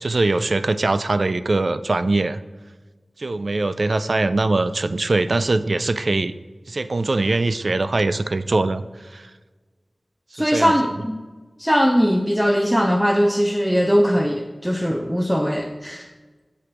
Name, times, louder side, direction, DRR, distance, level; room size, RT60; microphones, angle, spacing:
voice 1, 0.0-2.4 3.2-6.3 6.7-9.3 10.4-10.7, right 2 dB, 60° right, 13 dB, 0.4 m, -22 dB
voice 2, 10.4-11.2 11.6-16.1, equal, ahead, 3 dB, 0.5 m, -20 dB
6.9 x 4.8 x 5.8 m, 1.3 s
wide cardioid pair, 55°, 0 cm